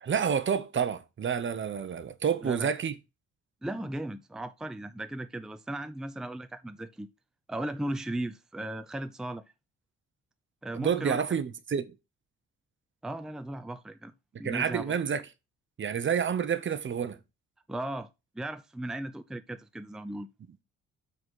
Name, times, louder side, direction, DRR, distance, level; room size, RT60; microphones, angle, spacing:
voice 1, 0.0-2.9 10.7-11.8 14.4-15.2 15.8-17.2, right 7 dB, 40° right, 0.9 m, -29 dB
voice 2, 3.6-7.1 7.5-9.4 10.6-11.2 13.0-14.1 14.4-14.9 17.7-18.1 18.3-20.3, right 1 dB, ahead, 0.6 m, -36 dB
7.3 x 4.1 x 4.7 m
cardioid pair, 90°, 30 cm